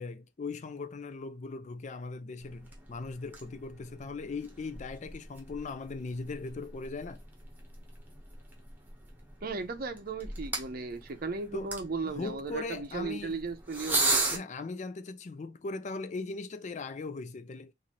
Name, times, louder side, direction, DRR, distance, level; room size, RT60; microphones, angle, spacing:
voice 1, 0.0-7.2 11.5-11.8 12.0-13.5 14.3-17.7, left 3 dB, 40° left, 0.4 m, -39 dB
sound 1, 2.4-14.4, right 2 dB, 10° right, 1.0 m, -37 dB
voice 2, 9.4-14.4, right 3 dB, 50° right, 0.6 m, -36 dB
4.2 x 2.6 x 3.0 m
head